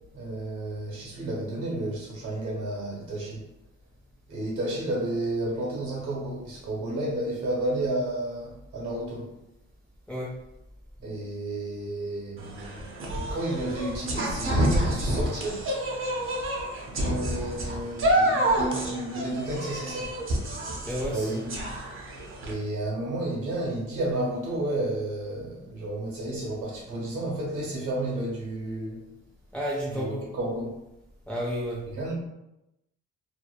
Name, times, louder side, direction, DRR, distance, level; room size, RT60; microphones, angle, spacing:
voice 1, 0.1-3.4 4.3-9.3 11.0-15.7 16.9-20.1 21.1-21.6 22.4-29.1 30.0-30.7 32.0-32.1, right 1 dB, 75° right, -4 dB, 1.1 m, -32 dB
sound 1, 12.4-22.5, right 1 dB, 45° right, 0.6 m, -28 dB
voice 2, 20.8-21.4 29.5-30.3 31.3-31.8, equal, 5° left, -5 dB, 0.4 m, -31 dB
2.8 x 2.1 x 2.2 m, 0.91 s
cardioid pair, 90°, 30 cm